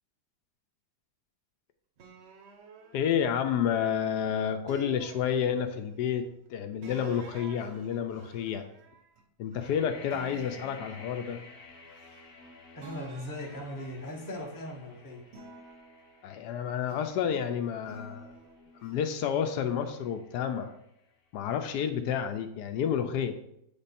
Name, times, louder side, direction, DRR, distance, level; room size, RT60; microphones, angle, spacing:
sound 1, 2.0-4.1 4.7-6.0 6.8-9.8 10.1-12.5 12.8-14.8 15.3-17.3 17.8-19.0, right 4 dB, 55° right, 0.7 m, -51 dB
voice 1, 2.9-8.6 9.4-11.4 16.2-18.3 18.8-20.7 21.3-23.4, left 8 dB, 80° left, 8 dB, 1.1 m, -30 dB
sound 2, 9.6-21.4, left 3 dB, 45° left, 0.8 m, -54 dB
voice 2, 12.7-15.2, left 1 dB, 15° left, -1 dB, 0.8 m, -39 dB
7.9 x 3.4 x 4.2 m, 0.77 s
omnidirectional pair, 1.8 m